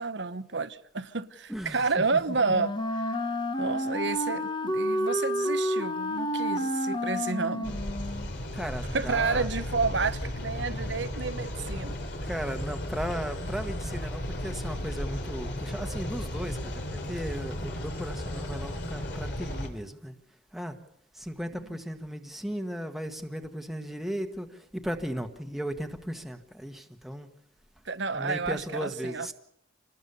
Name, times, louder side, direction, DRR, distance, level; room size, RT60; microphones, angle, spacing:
voice 1, 0.0-3.2 3.6-7.8 8.9-12.0 27.8-29.3, right 4 dB, 65° right, 1.1 m, -30 dB
voice 2, 1.5-2.4 8.5-9.5 12.2-20.1 20.5-20.7 21.1-27.3 28.1-29.3, equal, ahead, 1.5 m, -36 dB
Wind instrument woodwind instrument, 2.4-8.3, equal, 25° left, 1.2 m, -30 dB
sound 1, 7.6-19.7, left 1 dB, 60° left, 3.5 m, -35 dB
27.5 x 20.0 x 6.9 m
head